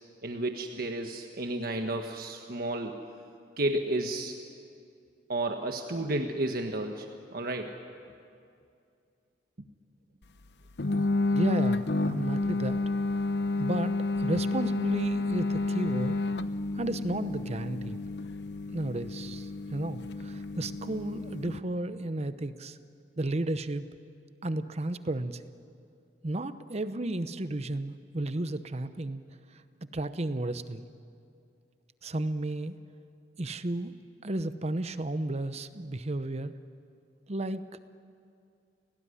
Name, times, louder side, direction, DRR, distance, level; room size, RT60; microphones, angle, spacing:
voice 1, 0.2-3.0 3.6-4.4 5.3-7.1 7.3-7.8, right 1 dB, 60° right, 4 dB, 1.4 m, -32 dB
sound 1, 10.8-21.6, left 2 dB, 70° left, 0.9 m, -30 dB
voice 2, 11.3-12.8 13.6-16.2 16.7-18.0 18.7-22.8 23.2-23.8 24.4-25.4 26.2-29.2 29.9-30.9 32.0-32.8 33.4-33.9 34.2-36.5 37.3-37.6, right 1 dB, 40° right, 12 dB, 0.8 m, -33 dB
29.5 x 18.5 x 9.9 m, 2.4 s
head